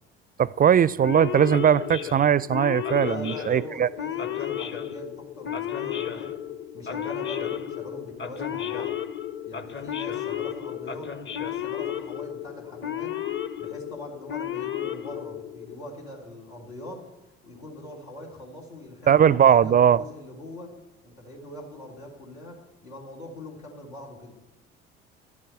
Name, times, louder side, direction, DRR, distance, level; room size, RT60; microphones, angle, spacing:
voice 1, 0.4-3.9 19.1-20.0, right 9 dB, 30° right, 0.4 m, -19 dB
Male speech man speaking / Siren, 1.0-15.8, left 10 dB, 35° left, 1.1 m, -33 dB
voice 2, 3.0-6.4 6.7-8.9 9.4-13.1 13.6-17.1 17.4-20.8 21.0-24.3, equal, 85° left, 3.4 m, -42 dB
12.5 x 8.5 x 8.0 m
hypercardioid pair, 55°, 31 cm